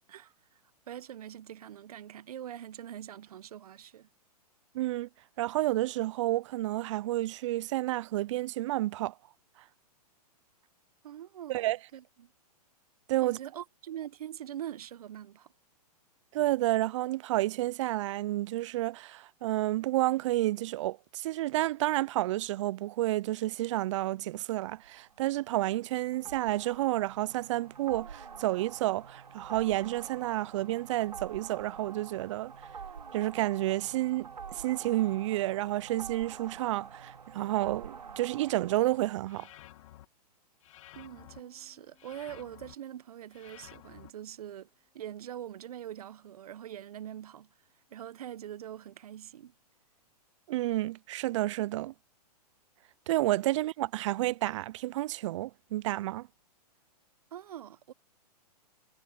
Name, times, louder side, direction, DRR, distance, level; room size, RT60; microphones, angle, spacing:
voice 1, 0.1-0.6 0.9-4.1 11.0-12.3 13.2-15.5 40.9-44.7 44.9-47.5 47.9-49.5 57.3-57.9, right 11 dB, 65° right, 1.2 m, -43 dB
voice 2, 4.7-5.1 5.4-9.1 11.5-11.8 13.1-13.4 16.3-32.5 33.1-39.5 50.5-51.9 53.1-56.3, right 16 dB, 50° right, 0.5 m, -30 dB
sound 1, 24.6-39.1, right 6 dB, 85° right, 3.2 m, -47 dB
sound 2, 39.3-40.1 40.6-41.4 42.0-42.7 43.3-44.1, left 15 dB, 50° left, 2.1 m, -52 dB
Piano, 41.2-46.9, left 7 dB, 15° left, 6.6 m, -71 dB
hypercardioid pair, 120°, 21 cm